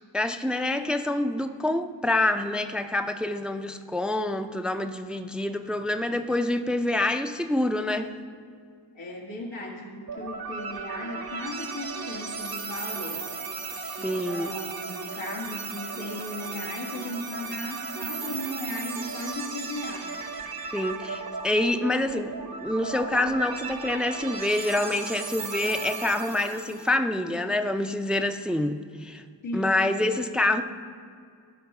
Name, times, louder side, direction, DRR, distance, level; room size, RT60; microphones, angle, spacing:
voice 1, 0.1-8.1 13.7-14.5 20.7-29.2 29.5-30.6, left 1 dB, ahead, 8 dB, 0.5 m, -27 dB
voice 2, 9.0-13.2 14.0-20.1 29.4-29.9, left 1 dB, 90° left, -1 dB, 1.7 m, -36 dB
sound 1, 10.1-27.0, right 4 dB, 55° right, 0.9 m, -36 dB
13.0 x 4.6 x 5.9 m, 2.2 s
cardioid pair, 50°, 44 cm